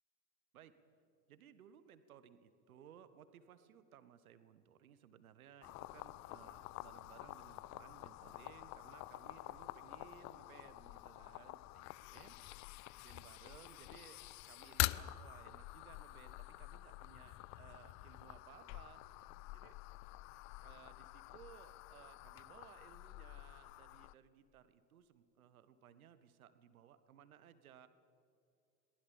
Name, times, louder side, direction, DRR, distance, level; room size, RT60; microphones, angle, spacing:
voice 1, 1.3-12.6 13.0-19.0 19.5-19.8 20.6-27.9, right 9 dB, 65° right, 13 dB, 1.6 m, -61 dB
sound 1, 5.6-24.1, left 19 dB, 40° left, 0.6 m, -47 dB
22.5 x 19.5 x 7.2 m, 2.5 s
figure-of-eight pair, 70°, 45 cm